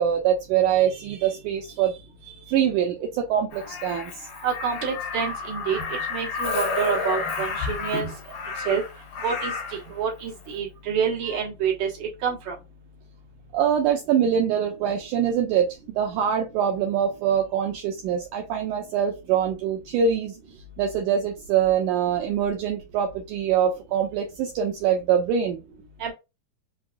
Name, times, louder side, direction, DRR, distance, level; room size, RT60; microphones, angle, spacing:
voice 1, 0.0-4.3 13.5-20.4 20.8-25.6, right 8 dB, 80° right, 3 dB, 1.9 m, -24 dB
Crow, 3.5-9.9 11.3-11.5, left 4 dB, 70° left, 2.5 m, -31 dB
voice 2, 4.4-5.8 6.1-8.1 8.7-8.8 9.2-12.5 26.0-26.1, right 7 dB, 60° right, -4 dB, 2.4 m, -27 dB
5.8 x 2.2 x 2.5 m, 0.26 s
omnidirectional pair, 3.9 m